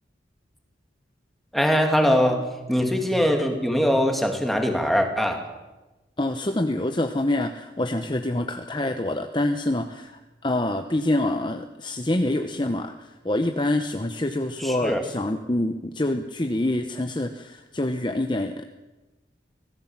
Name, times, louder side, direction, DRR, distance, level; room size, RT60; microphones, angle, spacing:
voice 1, 1.5-5.4 14.6-15.0, equal, ahead, 3 dB, 2.6 m, -22 dB
voice 2, 6.2-18.6, left 1 dB, 25° left, 6 dB, 0.9 m, -26 dB
24.5 x 17.5 x 7.4 m, 1.1 s
head